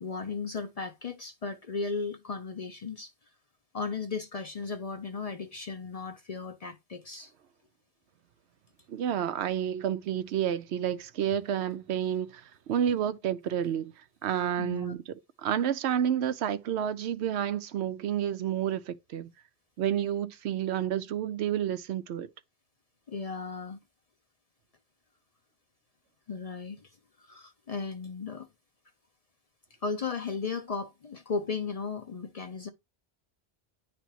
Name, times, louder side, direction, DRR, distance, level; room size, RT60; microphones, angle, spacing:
voice 1, 0.0-3.1 3.7-7.3 14.6-14.9 23.1-23.8 26.3-26.9 27.3-28.5 29.8-32.7, left 4 dB, 45° left, 0.5 m, -35 dB
voice 2, 8.9-12.4 12.7-13.9 14.2-15.0 15.4-19.3 19.8-22.3, right 9 dB, 80° right, 0.9 m, -30 dB
10.0 x 3.4 x 2.9 m
omnidirectional pair, 1.1 m